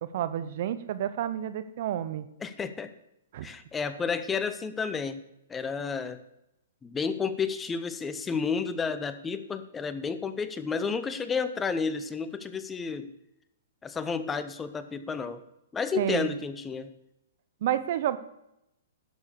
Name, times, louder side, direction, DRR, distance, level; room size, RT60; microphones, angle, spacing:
voice 1, 0.0-2.3 3.3-3.5 15.9-16.3 17.6-18.2, right 11 dB, 55° right, 13 dB, 0.8 m, -30 dB
voice 2, 2.4-2.9 3.4-5.2 5.5-6.2 6.8-13.1 13.8-15.4 15.7-16.9, left 5 dB, 15° left, 12 dB, 0.8 m, -31 dB
11.5 x 7.2 x 6.8 m, 0.84 s
hypercardioid pair, 135°, 0 cm